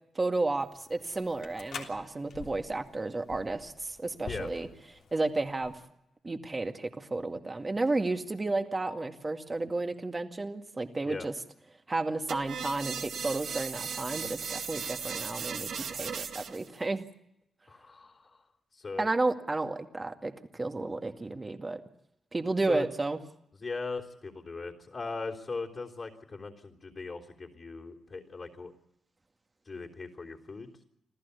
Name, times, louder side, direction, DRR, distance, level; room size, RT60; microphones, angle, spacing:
voice 1, 0.2-4.7 5.1-5.8 6.2-11.3 11.9-17.0 19.0-21.8 22.3-23.2, right 2 dB, 30° right, 6 dB, 2.1 m, -32 dB
sound 1, 0.6-5.9, left 6 dB, 75° left, 3.3 m, -47 dB
sound 2, 12.3-16.7, right 6 dB, 75° right, 2.1 m, -37 dB
voice 2, 17.7-18.3 18.7-19.1 22.7-22.8 23.6-28.7 29.7-30.7, left 4 dB, 45° left, -3 dB, 3.6 m, -39 dB
27.5 x 15.0 x 8.3 m, 0.83 s
cardioid pair, 65°, 0 cm